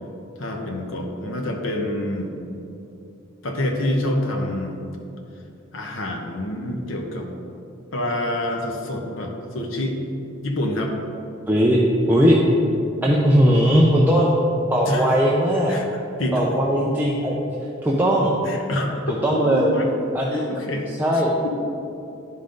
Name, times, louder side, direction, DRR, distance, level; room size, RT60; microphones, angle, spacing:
voice 1, 0.4-2.3 3.4-4.8 5.7-7.3 7.9-10.0 10.4-10.9 14.9-15.1 15.7-15.9 16.2-16.4 18.4-19.0 19.3-19.9 20.3-20.9 21.1-21.5, left 1 dB, 75° left, 2 dB, 1.0 m, -27 dB
voice 2, 11.5-11.8 12.1-12.4 13.0-14.3 14.7-15.7 16.3-17.4 17.8-18.3 19.1-19.7 20.1-20.4 21.0-21.3, equal, 10° right, -4 dB, 0.6 m, -18 dB
10.0 x 5.5 x 3.9 m, 2.8 s
head